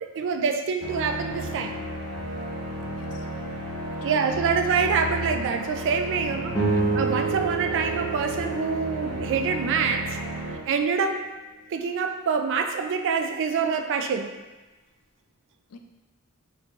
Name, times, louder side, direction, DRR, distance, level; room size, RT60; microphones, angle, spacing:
voice 1, 0.0-1.8 4.0-10.2 10.7-11.3 11.7-14.3, right 5 dB, 55° right, 6 dB, 0.4 m, -26 dB
sound 1, 0.8-10.6, right 1 dB, 80° right, 0.8 m, -33 dB
voice 2, 2.9-3.3 4.0-4.2 15.7-15.8, left 5 dB, 80° left, 5 dB, 0.4 m, -43 dB
sound 2, 6.5-11.0, right 3 dB, 5° left, 0.9 m, -30 dB
3.9 x 2.7 x 3.6 m, 1.2 s
head